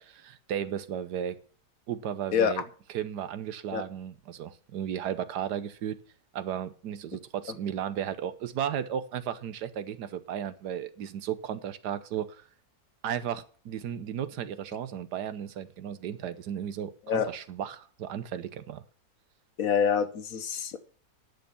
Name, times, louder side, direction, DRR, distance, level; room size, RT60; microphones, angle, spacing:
voice 1, 0.3-1.4 1.9-2.6 2.9-6.0 6.3-12.4 13.0-18.8 20.5-20.6, right 9 dB, 85° right, 1.5 m, -34 dB
voice 2, 19.6-20.8, left 7 dB, 60° left, 1.3 m, -26 dB
10.5 x 6.6 x 7.0 m
omnidirectional pair, 1.7 m